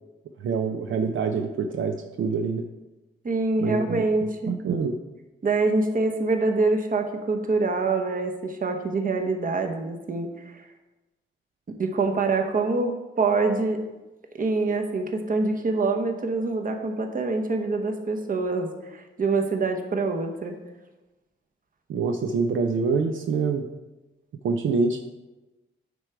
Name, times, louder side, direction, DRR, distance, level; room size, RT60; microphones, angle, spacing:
voice 1, 0.4-2.6 3.6-4.0 4.5-5.0 21.9-23.6 24.4-25.0, right 5 dB, 70° right, 4 dB, 0.5 m, -25 dB
voice 2, 3.2-4.5 5.4-10.7 11.8-13.8 14.3-20.6, right 3 dB, 40° right, 4 dB, 0.9 m, -25 dB
9.6 x 3.3 x 4.6 m, 1.1 s
cardioid pair, 90°, 21 cm